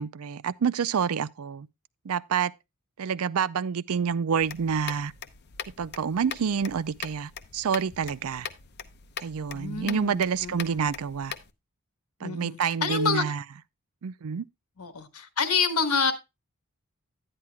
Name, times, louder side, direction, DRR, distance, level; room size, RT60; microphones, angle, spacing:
voice 1, 0.0-1.7 2.1-2.5 3.0-5.1 5.8-8.5 9.2-11.3 12.2-13.4 14.0-14.5, right 6 dB, 75° right, 0.4 m, -28 dB
sound 1, 4.4-11.5, left 7 dB, 50° left, 0.7 m, -41 dB
voice 2, 9.5-10.9 12.2-13.3 14.8-16.1, left 5 dB, 85° left, 1.4 m, -28 dB
10.5 x 10.0 x 2.2 m
head